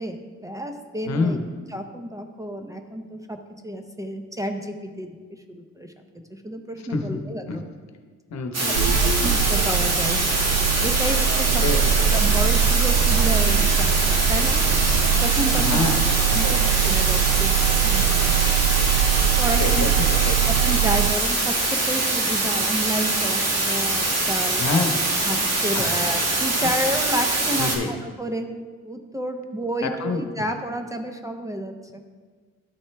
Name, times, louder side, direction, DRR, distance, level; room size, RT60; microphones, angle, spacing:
voice 1, 0.0-1.4 1.7-3.4 3.6-5.1 5.5-7.6 8.6-8.7 9.2-10.2 10.8-11.6 12.1-14.6 15.2-15.8 16.3-16.5 16.8-17.5 17.8-18.6 19.4-19.9 20.2-24.6 25.2-28.5 28.8-32.0, equal, 10° right, 5 dB, 0.6 m, -30 dB
voice 2, 1.0-1.5 6.9-7.2 7.5-7.6 8.3-8.9 11.5-12.2 15.5-16.0 16.3-16.6 19.6-20.4 24.6-24.9 25.7-26.0 26.6-26.7 27.6-27.9 29.8-30.2, left 4 dB, 60° left, 6 dB, 0.9 m, -27 dB
sound 1, 8.5-27.8, right 2 dB, 55° right, 1.7 m, -23 dB
sound 2, 8.7-21.1, right 9 dB, 85° right, 0.6 m, -22 dB
12.5 x 4.2 x 3.3 m, 1.5 s
cardioid pair, 90°, 30 cm